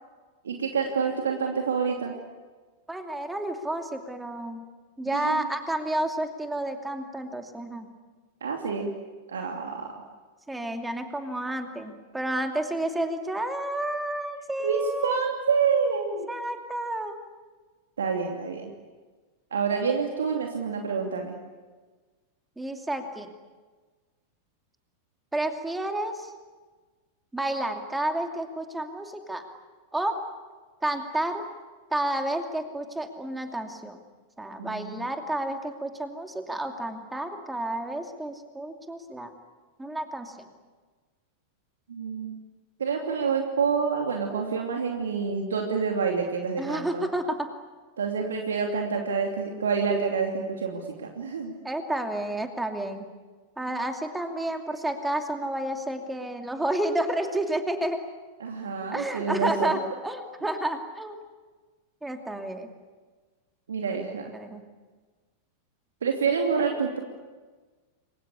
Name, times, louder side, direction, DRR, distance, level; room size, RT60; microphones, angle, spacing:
voice 1, 0.4-2.1 5.0-5.5 8.4-8.9 9.3-9.9 14.6-16.3 18.0-18.7 19.5-21.3 34.6-35.1 41.9-42.4 42.8-47.1 48.0-51.5 58.4-59.8 63.7-64.3 66.0-67.0, right 5 dB, 65° right, 2 dB, 2.8 m, -28 dB
voice 2, 2.9-4.6 5.0-7.9 10.5-15.3 16.3-17.2 22.6-23.3 25.3-26.3 27.3-29.4 29.9-30.2 30.8-31.4 31.9-34.0 34.4-39.3 39.8-40.3 46.6-47.5 51.6-53.1 53.6-58.0 58.9-61.2 62.0-62.7 64.3-64.6, right 1 dB, 5° right, 5 dB, 2.7 m, -30 dB
29.0 x 23.0 x 8.5 m, 1.4 s
figure-of-eight pair, 90°, 0 cm